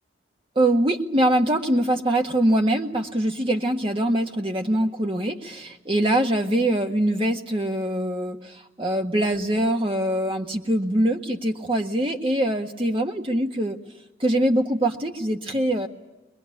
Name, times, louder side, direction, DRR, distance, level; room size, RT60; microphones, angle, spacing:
voice 1, 0.6-13.8 14.2-15.9, right 1 dB, 30° right, 3 dB, 1.7 m, -23 dB
23.5 x 21.0 x 9.9 m, 0.99 s
head